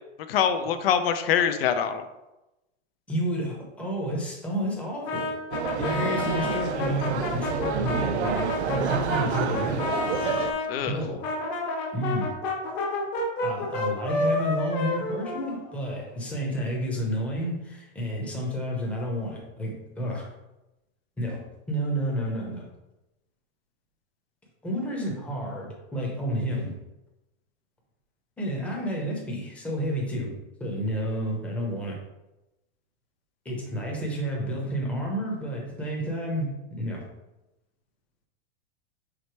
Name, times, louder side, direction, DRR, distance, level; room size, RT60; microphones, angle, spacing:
voice 1, 0.3-2.0 10.7-11.0, left 8 dB, 60° left, 9 dB, 0.7 m, -24 dB
voice 2, 3.1-5.3 5.8-10.0 10.9-11.2 11.9-12.4 13.4-20.3 21.2-22.7 24.6-26.7 28.4-32.0 33.4-37.0, equal, 5° left, -2 dB, 0.9 m, -30 dB
Brass instrument, 5.0-10.7 11.2-16.0, left 2 dB, 30° left, 1.1 m, -30 dB
sound 1, 5.5-10.5, right 7 dB, 75° right, 0.7 m, -29 dB
5.0 x 4.2 x 4.6 m, 0.97 s
supercardioid pair, 160°, 34 cm